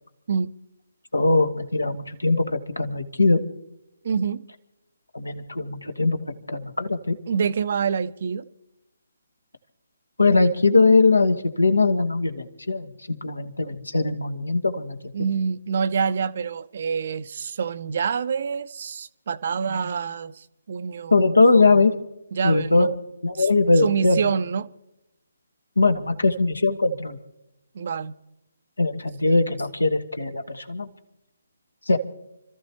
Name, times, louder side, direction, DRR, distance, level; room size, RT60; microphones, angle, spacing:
voice 1, 1.1-3.4 5.1-7.2 10.2-15.1 21.1-21.9 22.4-22.9 23.2-24.2 25.8-27.2 28.8-30.9 31.9-32.0, left 3 dB, 75° left, 9 dB, 1.6 m, -21 dB
voice 2, 4.0-4.4 7.3-8.4 15.1-21.3 22.3-22.9 23.4-24.7 27.7-28.1, right 6 dB, 45° right, 14 dB, 0.6 m, -26 dB
29.5 x 14.0 x 3.0 m, 0.91 s
figure-of-eight pair, 140°, 0 cm